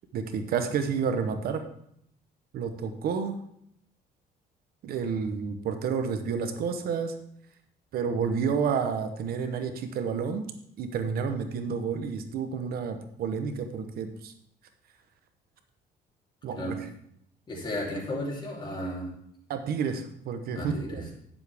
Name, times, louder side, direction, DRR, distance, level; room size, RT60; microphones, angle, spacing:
voice 1, 0.1-1.6 2.5-3.3 4.8-7.1 7.9-10.4 10.8-14.3 16.4-16.8 19.5-21.1, right 6 dB, 65° right, 8 dB, 0.9 m, -30 dB
voice 2, 17.5-19.1 20.5-21.1, equal, 30° left, -4 dB, 3.2 m, -34 dB
9.8 x 7.2 x 3.5 m, 0.72 s
cardioid pair, 110°, 17 cm